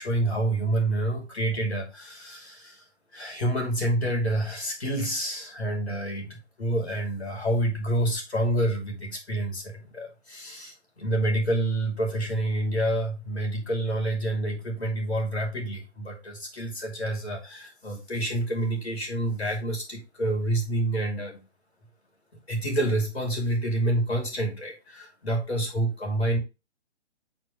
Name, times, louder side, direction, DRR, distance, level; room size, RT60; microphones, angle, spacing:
voice 1, 0.0-2.8 3.1-21.4 22.5-26.4, right 1 dB, 60° left, 1 dB, 2.9 m, -28 dB
9.1 x 4.4 x 3.2 m, 0.28 s
figure-of-eight pair, 135°, 35 cm